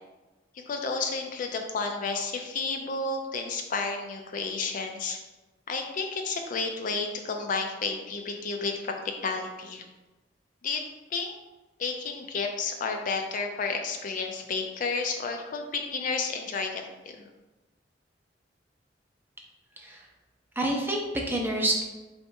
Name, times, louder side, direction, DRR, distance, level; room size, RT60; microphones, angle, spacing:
voice 1, 0.5-5.2 5.7-9.8 10.6-10.8 11.1-11.3 11.8-17.3, left 4 dB, 45° left, 4 dB, 0.4 m, -31 dB
voice 2, 19.8-20.1 20.6-21.8, right 1 dB, 10° right, 0 dB, 0.6 m, -28 dB
3.2 x 2.9 x 4.4 m, 1.1 s
head